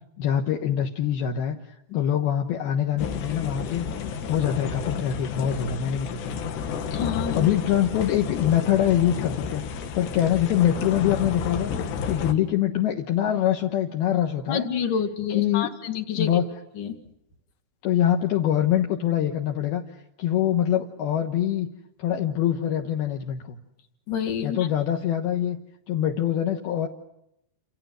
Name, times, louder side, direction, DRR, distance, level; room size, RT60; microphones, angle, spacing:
voice 1, 0.2-1.6 1.9-3.8 4.3-6.4 7.3-11.7 12.1-14.7 15.3-15.7 16.1-16.5 17.8-19.8 20.2-21.7 22.0-23.6 24.4-25.6 25.9-26.9, left 10 dB, 75° left, 2 dB, 3.1 m, -24 dB
sound 1, 3.0-12.3, left 6 dB, 90° left, 3.9 m, -31 dB
voice 2, 6.9-7.5 14.5-16.4 16.8-17.0 24.1-24.7, left 7 dB, 55° left, 3 dB, 3.5 m, -28 dB
29.5 x 27.5 x 6.5 m, 0.81 s
omnidirectional pair, 4.8 m